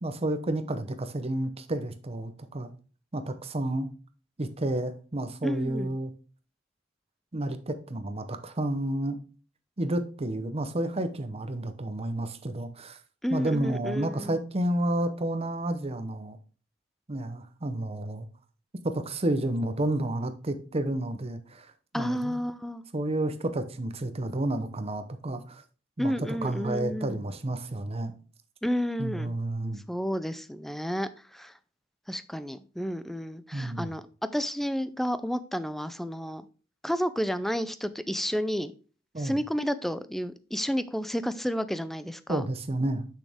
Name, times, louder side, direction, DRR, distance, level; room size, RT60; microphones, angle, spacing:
voice 1, 0.0-2.7 3.1-3.9 4.4-6.1 7.3-9.2 9.8-13.0 13.3-16.4 17.1-18.3 18.8-22.4 22.9-25.6 26.0-26.1 26.4-28.2 29.0-29.8 33.5-33.9 39.1-39.4 42.3-43.1, right 1 dB, 30° right, 0.8 m, -30 dB
voice 2, 5.4-5.9 13.2-14.4 21.9-22.8 26.0-27.2 28.6-29.3 29.9-31.5 32.1-34.0 34.3-36.5 36.8-38.7 39.2-42.4, equal, ahead, 0.4 m, -31 dB
6.4 x 6.4 x 3.5 m
head